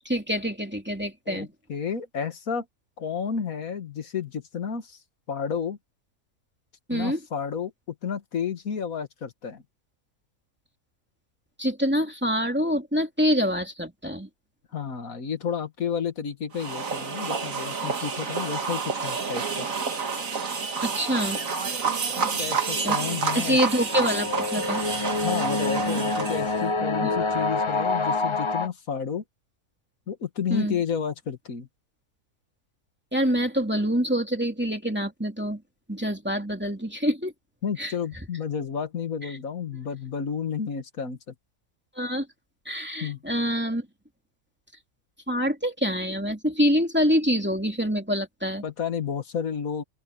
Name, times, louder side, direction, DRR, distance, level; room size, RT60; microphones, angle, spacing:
voice 1, 0.0-1.5 6.9-7.2 11.6-14.3 20.8-21.4 22.8-23.0 23.3-24.8 27.0-27.1 30.5-30.8 33.1-35.6 35.9-37.3 37.8-37.9 42.0-42.3 42.7-43.9 45.3-48.6, equal, 5° right, 2.8 m, -26 dB
voice 2, 1.3-2.7 3.0-5.0 5.3-5.8 6.9-7.7 8.0-9.6 14.7-19.7 22.2-23.6 25.2-29.2 30.1-31.7 37.6-41.3 43.0-43.2 48.6-49.8, left 7 dB, 70° left, 2.0 m, -31 dB
sound 1, 16.5-26.6, right 5 dB, 60° right, 2.1 m, -29 dB
sound 2, 22.0-28.7, left 3 dB, 30° left, 0.6 m, -28 dB
open air
omnidirectional pair, 1.6 m